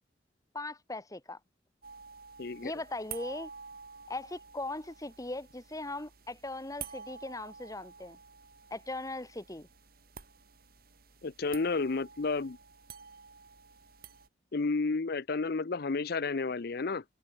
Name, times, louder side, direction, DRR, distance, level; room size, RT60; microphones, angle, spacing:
voice 1, 0.5-1.4 2.6-3.5 4.1-8.2 8.7-9.7, left 2 dB, 20° left, 1.9 m, -39 dB
sound 1, 1.8-14.3, right 6 dB, 55° right, 5.6 m, -50 dB
voice 2, 2.4-2.7 11.2-12.6 14.5-17.0, left 4 dB, 60° left, 0.6 m, -31 dB
head